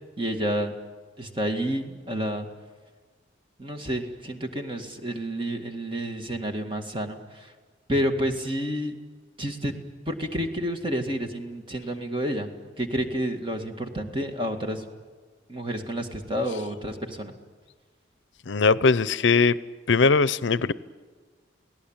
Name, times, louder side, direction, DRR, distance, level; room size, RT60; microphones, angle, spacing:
voice 1, 0.2-0.7 1.2-2.5 3.6-7.5 7.9-9.0 9.4-9.8 10.1-12.5 12.8-14.8 15.5-17.3, equal, 25° right, 2.0 m, -29 dB
voice 2, 18.5-19.6 19.9-20.7, left 4 dB, 75° left, 0.7 m, -20 dB
28.5 x 18.0 x 8.9 m
head